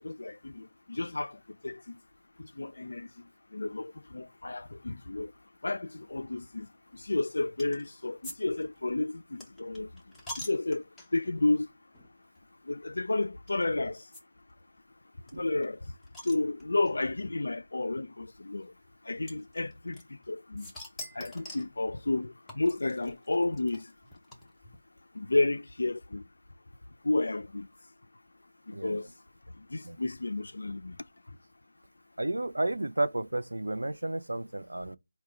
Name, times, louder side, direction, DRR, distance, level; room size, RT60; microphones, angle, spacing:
voice 1, 0.0-2.0 2.4-3.1 3.5-5.3 5.6-9.9 10.4-10.8 11.1-11.7 12.6-14.1 15.4-15.9 16.2-18.7 19.0-20.7 21.1-23.9 25.1-26.2 27.0-27.7 28.7-29.1 29.6-31.0, left 2 dB, 65° left, 0.3 m, -31 dB
sound 1, 7.6-7.9 8.2-8.4 8.6-11.3 11.9-12.1 12.3-12.4 13.5-13.6 14.1-14.2 14.5-14.6 14.8-14.9 15.3-16.9 17.8-17.9 19.3-20.3 20.6-21.7 22.5-24.8, left 1 dB, 5° left, 0.6 m, -45 dB
voice 2, 32.2-35.0, right 2 dB, 85° right, 0.5 m, -32 dB
4.5 x 2.2 x 3.7 m
figure-of-eight pair, 170°, 0 cm